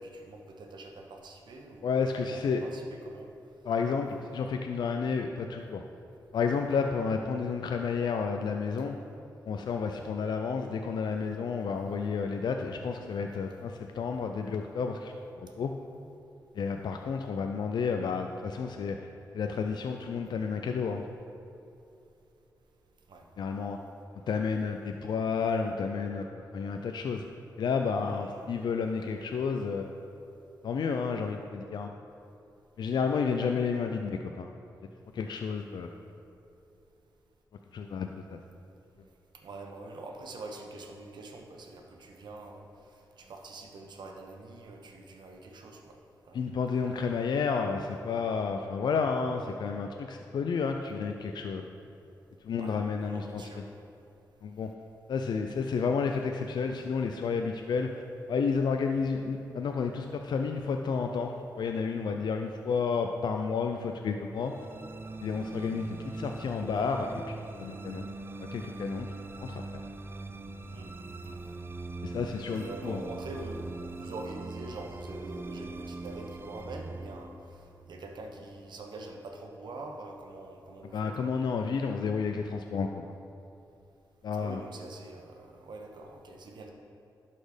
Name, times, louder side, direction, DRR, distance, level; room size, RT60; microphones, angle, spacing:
voice 1, 0.0-3.3 23.1-23.3 28.1-28.5 39.4-42.7 43.2-46.0 46.3-46.4 46.8-47.3 52.6-53.6 70.7-71.5 72.5-77.3 77.9-81.1 84.3-86.7, right 2 dB, 75° right, 2 dB, 1.0 m, -45 dB
voice 2, 1.8-2.6 3.6-5.8 6.3-9.0 9.5-15.7 16.5-19.0 19.3-21.0 23.4-23.8 24.3-27.2 27.6-29.9 30.6-31.9 32.8-34.5 35.1-35.9 37.7-38.4 46.3-51.7 52.4-53.7 54.4-54.7 55.1-58.0 58.3-64.5 65.2-68.1 68.4-69.1 69.4-69.8 72.0-73.0 80.8-83.1 84.2-84.6, left 5 dB, 75° left, 4 dB, 0.4 m, -31 dB
sound 1, 64.4-78.8, right 2 dB, 30° right, 0.5 m, -42 dB
11.5 x 4.2 x 5.0 m, 2.8 s
cardioid pair, 55°, 8 cm